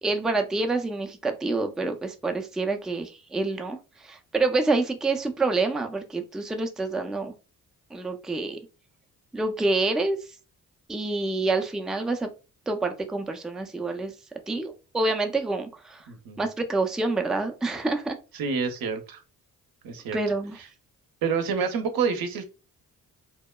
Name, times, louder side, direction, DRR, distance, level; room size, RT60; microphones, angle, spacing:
voice 1, 0.0-7.3 7.9-8.6 9.3-10.2 10.9-12.3 12.7-14.1 14.5-16.1 16.4-18.2 20.1-20.6, right 3 dB, ahead, 5 dB, 0.4 m, -27 dB
voice 2, 16.1-16.4 18.3-19.2 19.8-20.2 21.2-22.4, right 5 dB, 70° right, 7 dB, 0.7 m, -28 dB
2.8 x 2.1 x 2.2 m, 0.31 s
supercardioid pair, 50°, 37 cm